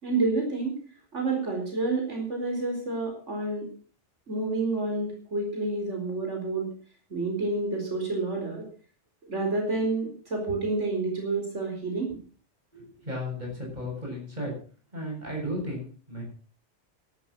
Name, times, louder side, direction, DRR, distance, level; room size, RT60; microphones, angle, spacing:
voice 1, 0.0-0.7 1.1-3.7 4.3-6.7 7.1-8.6 9.2-12.2, right 3 dB, 90° right, 1 dB, 4.7 m, -29 dB
voice 2, 12.7-14.5 14.9-16.2, equal, 40° right, -1 dB, 7.5 m, -34 dB
12.5 x 12.5 x 6.2 m, 0.41 s
omnidirectional pair, 1.2 m